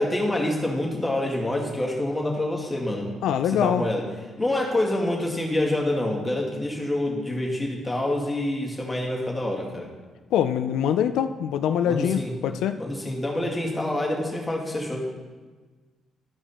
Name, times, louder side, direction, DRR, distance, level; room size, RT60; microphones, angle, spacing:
voice 1, 0.0-3.1 3.5-4.0 4.4-9.9 11.8-12.3 12.8-15.1, left 1 dB, 15° left, -2 dB, 2.1 m, -26 dB
voice 2, 3.2-3.8 10.3-12.8, left 9 dB, 85° left, 9 dB, 0.3 m, -24 dB
13.0 x 4.9 x 4.3 m, 1.4 s
cardioid pair, 90°, 0 cm